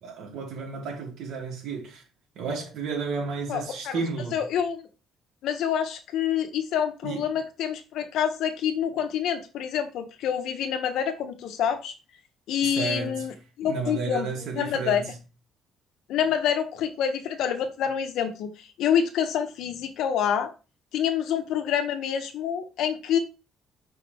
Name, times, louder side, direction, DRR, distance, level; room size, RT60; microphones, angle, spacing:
voice 1, 0.0-2.0 2.3-4.5 7.0-7.2 12.6-13.3 13.6-15.2, right 4 dB, 65° right, 2.9 m, -32 dB
voice 2, 3.5-4.0 4.3-4.9 5.4-11.9 12.5-15.1 16.1-20.5 20.9-23.2, left 8 dB, 70° left, 1.2 m, -27 dB
5.9 x 5.4 x 3.6 m
cardioid pair, 145°, 0 cm